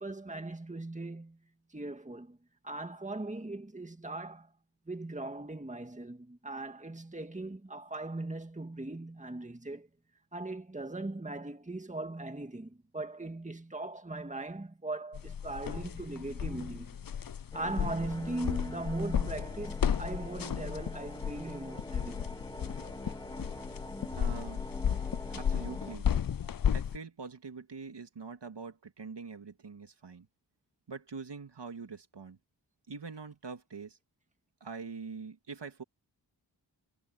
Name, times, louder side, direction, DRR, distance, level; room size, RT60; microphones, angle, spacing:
voice 1, 0.0-1.4 1.7-2.4 2.6-4.5 4.9-9.9 10.3-16.9 17.5-22.3, right 2 dB, 15° right, 1.9 m, -39 dB
sound 1, 15.1-27.0, left 8 dB, 50° left, 0.6 m, -34 dB
sound 2, 17.5-26.0, left 1 dB, 10° left, 2.5 m, -45 dB
voice 2, 24.1-24.6 25.3-26.1 26.7-30.3 30.9-32.4 32.9-34.0 34.6-35.8, right 4 dB, 70° right, 2.3 m, -44 dB
wide cardioid pair, 80°, 43 cm